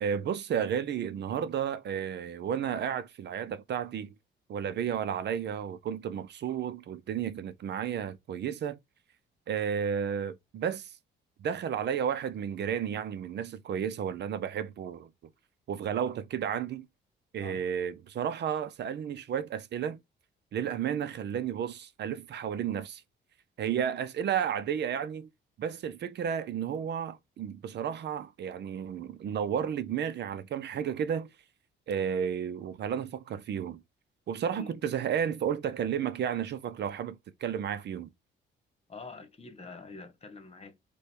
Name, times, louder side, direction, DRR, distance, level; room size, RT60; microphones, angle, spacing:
voice 1, 0.0-4.1 4.5-8.8 9.5-11.0 11.4-15.1 15.7-16.9 17.3-20.0 20.5-23.0 23.6-25.3 25.6-31.3 31.9-33.8 34.3-37.2 37.4-38.1, right 8 dB, 60° right, 0.6 m, -32 dB
voice 2, 38.9-40.8, left 4 dB, 30° left, 1.2 m, -46 dB
5.0 x 2.3 x 4.5 m
cardioid pair, 90°, 20 cm